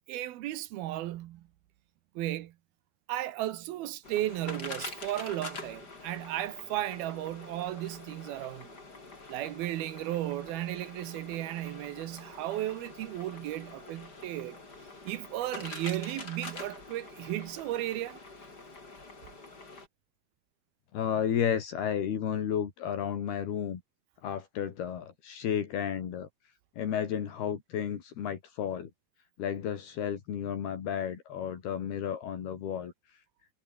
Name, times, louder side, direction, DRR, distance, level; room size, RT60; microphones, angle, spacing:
voice 1, 0.1-1.5 2.2-2.5 3.1-8.8 9.3-14.6 15.1-18.2, right 14 dB, 75° right, 2.9 m, -35 dB
sound 1, 4.0-19.9, left 3 dB, 25° left, 4.8 m, -46 dB
voice 2, 20.9-23.8 24.2-26.3 26.8-28.9 29.4-33.2, left 8 dB, 75° left, 4.8 m, -32 dB
omnidirectional pair, 4.6 m